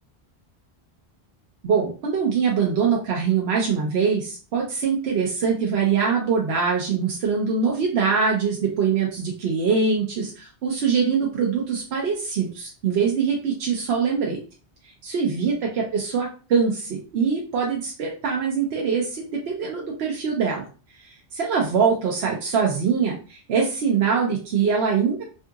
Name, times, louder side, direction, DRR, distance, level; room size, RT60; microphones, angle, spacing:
voice 1, 1.6-14.4 15.0-20.7 21.0-25.2, right 6 dB, 80° right, -1 dB, 0.9 m, -23 dB
2.7 x 2.6 x 2.3 m, 0.36 s
omnidirectional pair, 1.1 m